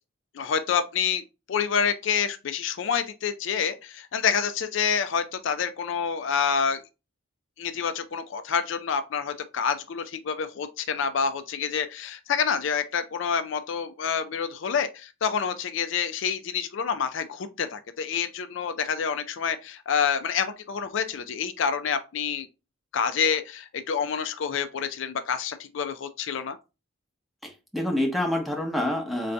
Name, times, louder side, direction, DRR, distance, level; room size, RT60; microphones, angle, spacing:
voice 1, 0.3-1.2 1.5-6.8 7.6-22.5 22.9-26.6, left 6 dB, 65° left, 0.4 m, -27 dB
voice 2, 27.4-29.3, left 1 dB, ahead, 0.8 m, -27 dB
3.8 x 2.7 x 3.3 m
head